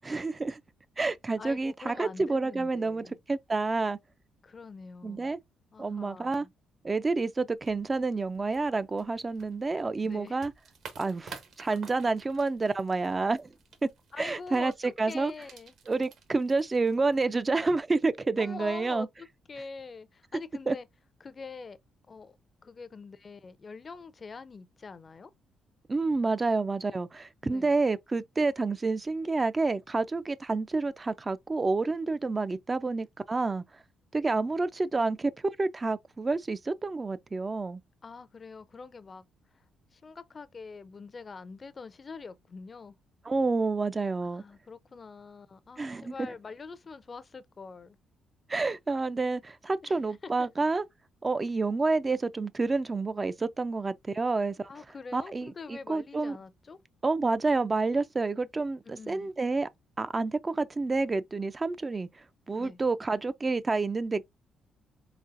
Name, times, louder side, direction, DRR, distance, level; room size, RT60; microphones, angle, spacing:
voice 1, 0.0-0.6 1.0-4.0 5.0-5.4 5.8-6.5 6.8-10.5 11.0-13.5 13.8-13.9 14.2-15.3 15.9-19.1 20.7-20.8 25.9-33.6 34.1-35.3 35.6-37.8 43.3-44.4 45.8-46.3 48.5-50.8 51.2-54.6 55.1-56.4 57.0-59.7 60.0-62.1 62.5-64.2, right 3 dB, 25° right, 0.3 m, -29 dB
voice 2, 1.4-3.2 4.4-5.3 5.7-6.5 10.0-10.4 14.1-15.7 18.4-20.9 21.2-21.8 22.1-22.4 22.6-25.3 27.4-27.7 38.0-39.2 39.9-43.0 44.4-48.0 49.8-50.5 54.7-56.8 58.8-59.3 62.6-62.8, left 4 dB, 35° left, 0.5 m, -44 dB
sound 1, 7.6-17.8, right 5 dB, 65° right, 1.1 m, -52 dB
4.0 x 3.7 x 2.5 m
cardioid pair, 90°, 0 cm